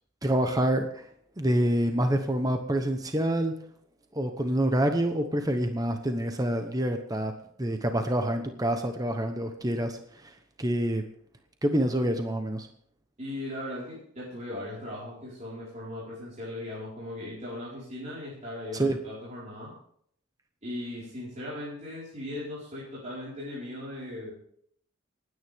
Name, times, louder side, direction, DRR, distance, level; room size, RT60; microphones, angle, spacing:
voice 1, 0.2-1.1 1.4-3.5 4.1-7.3 7.6-11.0 11.6-12.7 18.7-19.0, right 1 dB, 20° right, 6 dB, 1.0 m, -27 dB
voice 2, 13.2-19.7 20.6-24.3, left 1 dB, 35° right, -8 dB, 4.6 m, -38 dB
28.0 x 9.6 x 3.6 m, 0.65 s
head